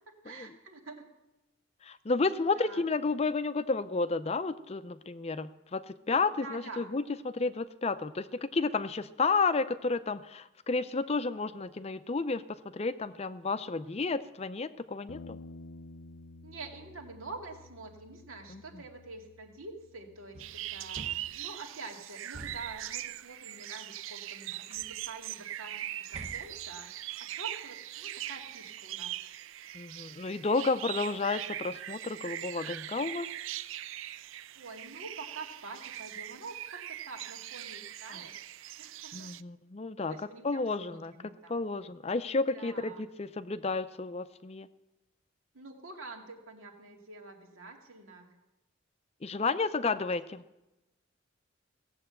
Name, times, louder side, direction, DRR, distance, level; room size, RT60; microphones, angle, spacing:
voice 1, 0.1-1.0 2.5-2.8 6.4-7.0 16.4-26.9 27.4-29.1 34.5-38.3 38.8-39.4 40.1-41.6 42.5-43.0 45.5-48.4 49.9-50.1, right 3 dB, 85° right, 2 dB, 2.3 m, -47 dB
voice 2, 1.8-15.4 18.5-18.8 29.7-33.3 38.1-38.2 39.1-40.2 40.4-44.7 49.2-50.4, left 3 dB, 30° left, 13 dB, 0.5 m, -32 dB
Bass guitar, 15.1-21.3, left 2 dB, 85° left, 0.6 m, -52 dB
sound 1, 20.3-21.5 22.3-22.9 24.5-25.0 26.1-26.8, right 2 dB, 35° right, 0.9 m, -48 dB
sound 2, 20.4-39.4, right 13 dB, 70° right, 0.4 m, -41 dB
16.5 x 7.9 x 7.8 m, 0.99 s
head